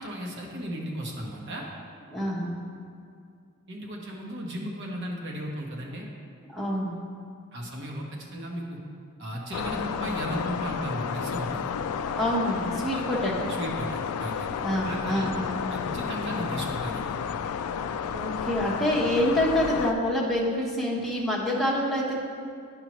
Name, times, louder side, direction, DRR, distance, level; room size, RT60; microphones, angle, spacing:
voice 1, 0.0-1.6 3.7-6.0 7.5-8.8 9.2-11.7 12.9-13.0 13.6-14.5 14.8-15.3 15.7-17.2, equal, 55° right, -1 dB, 1.1 m, -35 dB
voice 2, 2.1-2.5 6.5-7.0 12.1-13.5 14.6-15.6 17.8-22.1, equal, ahead, -7 dB, 1.1 m, -27 dB
sound 1, 9.5-19.9, left 7 dB, 85° left, 0.3 m, -32 dB
9.7 x 5.7 x 3.1 m, 2.3 s
head